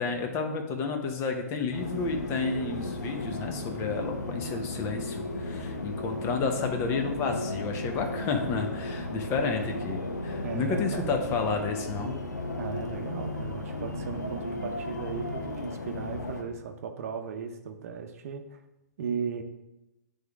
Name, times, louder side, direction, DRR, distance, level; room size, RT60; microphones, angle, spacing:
voice 1, 0.0-12.2, left 4 dB, 30° left, 5 dB, 0.9 m, -31 dB
sound 1, 1.7-16.4, left 2 dB, 90° left, 0.9 m, -35 dB
voice 2, 10.4-11.1 12.6-18.6 19.0-19.4, right 6 dB, 55° right, 6 dB, 0.7 m, -36 dB
9.2 x 3.5 x 3.5 m, 0.96 s
hypercardioid pair, 120°, 9 cm